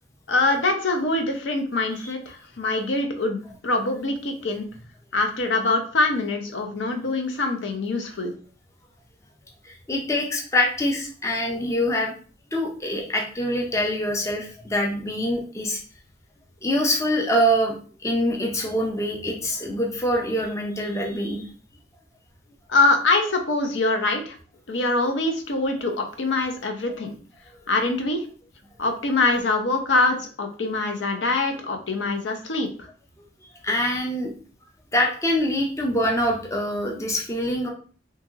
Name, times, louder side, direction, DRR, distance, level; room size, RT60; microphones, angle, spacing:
voice 1, 0.3-4.7 5.1-8.3 22.7-24.4 24.7-27.1 27.7-28.3 28.8-32.7, left 2 dB, 70° left, 4 dB, 0.6 m, -24 dB
voice 2, 9.6-12.1 12.5-15.8 16.6-17.8 18.0-21.4 33.6-34.3 34.9-37.7, equal, 15° left, 0 dB, 0.4 m, -24 dB
2.8 x 2.7 x 2.3 m, 0.41 s
head